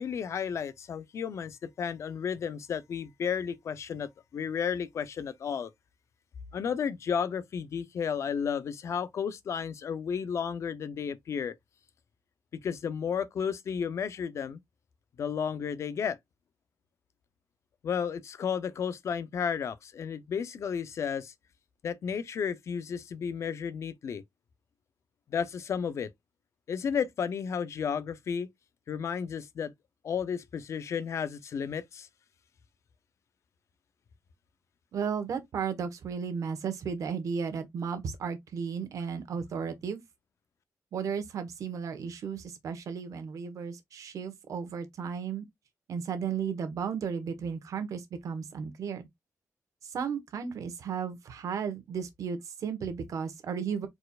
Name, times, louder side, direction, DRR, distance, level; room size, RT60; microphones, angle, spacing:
voice 1, 0.0-5.7 6.5-11.5 12.5-14.6 15.2-16.2 17.8-21.3 21.8-24.2 25.3-26.1 26.7-28.5 28.9-29.7 30.0-32.1, left 7 dB, 55° left, 0.6 m, -33 dB
voice 2, 34.9-40.0 40.9-45.4 45.9-49.1 49.8-53.9, right 6 dB, 75° right, 1.3 m, -34 dB
4.4 x 4.3 x 2.4 m
wide cardioid pair, 175°, 6 cm